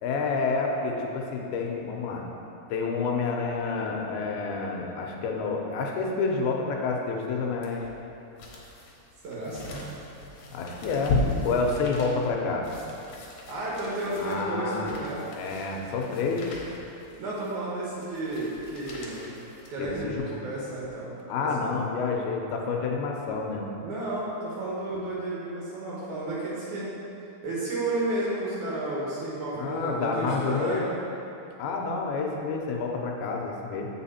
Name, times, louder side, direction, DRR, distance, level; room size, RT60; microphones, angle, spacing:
voice 1, 0.0-2.2 2.7-7.8 10.5-11.2 11.4-12.7 14.2-14.9 15.4-16.6 19.8-20.4 21.3-23.7 29.5-30.8 31.6-33.9, left 4 dB, 85° left, 0 dB, 2.7 m, -29 dB
sound 1, 7.6-20.3 20.8-20.9, left 3 dB, 70° left, 2.3 m, -36 dB
voice 2, 9.2-9.9 13.5-15.2 17.2-19.4 19.7-21.5 23.8-27.0 27.4-31.0, right 2 dB, 65° right, -6 dB, 2.3 m, -32 dB
8.0 x 5.6 x 4.3 m, 2.9 s
omnidirectional pair, 4.3 m